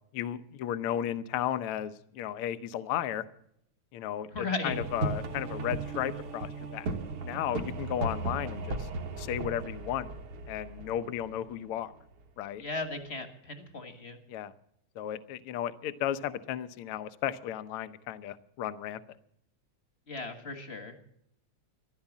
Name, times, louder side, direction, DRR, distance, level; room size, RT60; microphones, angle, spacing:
voice 1, 0.1-3.2 3.9-6.9 7.2-8.9 9.2-10.1 10.5-11.9 12.4-12.6 14.3-14.5 15.0-19.0, left 11 dB, 70° left, 12 dB, 1.3 m, -34 dB
voice 2, 4.3-4.7 12.6-14.2 20.1-20.9, left 3 dB, 35° left, 6 dB, 1.1 m, -36 dB
sound 1, 4.7-12.2, right 3 dB, 55° right, 1.9 m, -36 dB
14.5 x 12.0 x 7.2 m, 0.72 s
omnidirectional pair, 3.3 m